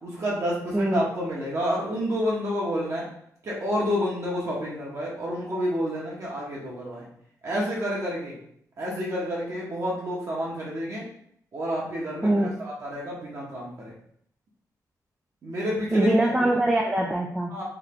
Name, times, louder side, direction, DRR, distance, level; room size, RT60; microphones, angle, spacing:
voice 1, 0.0-3.1 3.4-7.0 7.4-8.3 8.8-11.0 11.5-13.9 15.4-16.2 17.5-17.6, equal, 45° right, -4 dB, 1.3 m, -29 dB
voice 2, 12.2-12.6 15.9-17.5, right 1 dB, 10° right, 0 dB, 0.4 m, -23 dB
3.7 x 2.9 x 3.7 m, 0.66 s
wide cardioid pair, 135°, 7 cm